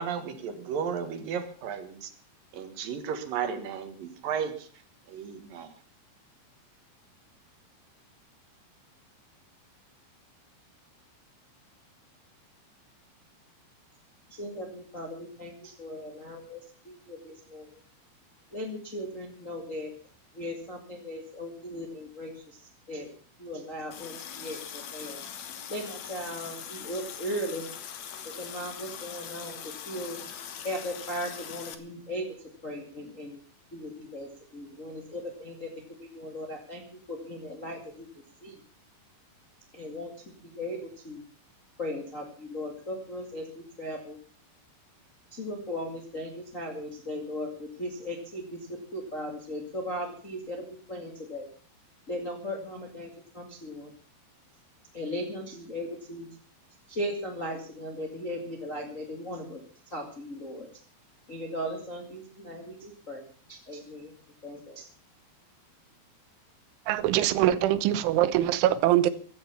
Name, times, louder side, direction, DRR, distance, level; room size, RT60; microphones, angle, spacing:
voice 1, 0.0-2.1 2.5-4.7 5.1-5.7, right 7 dB, 60° right, 2.8 m, -34 dB
voice 2, 14.3-17.8 18.5-19.9 20.3-22.6 22.9-23.1 23.4-25.2 25.7-27.7 28.2-30.2 30.6-32.3 32.6-33.4 33.7-38.1 38.4-38.6 39.7-41.2 41.8-44.2 45.3-51.5 52.1-53.9 54.9-56.4 56.9-60.7 61.3-63.2 63.5-64.1 64.4-64.9, equal, 35° left, 1.3 m, -37 dB
Water tap faucet, 23.9-31.7, left 8 dB, 75° left, 1.6 m, -41 dB
voice 3, 66.9-69.1, right 13 dB, 85° right, 3.4 m, -23 dB
15.5 x 10.5 x 7.1 m
omnidirectional pair, 5.3 m